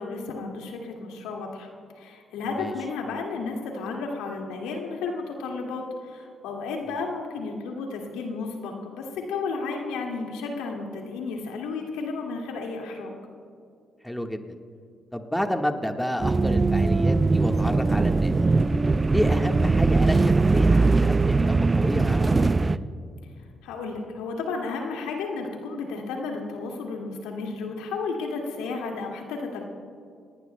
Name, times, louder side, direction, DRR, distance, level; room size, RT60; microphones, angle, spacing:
voice 1, 0.0-1.7 2.0-13.1 23.6-29.7, left 4 dB, 80° left, 1 dB, 2.1 m, -33 dB
voice 2, 14.0-14.4 15.1-18.3 19.1-22.8, equal, 5° left, 4 dB, 1.5 m, -30 dB
sound 1, 16.2-22.8, right 3 dB, 30° right, 0.5 m, -21 dB
28.0 x 19.0 x 2.2 m, 2.4 s
hypercardioid pair, 45°, 0 cm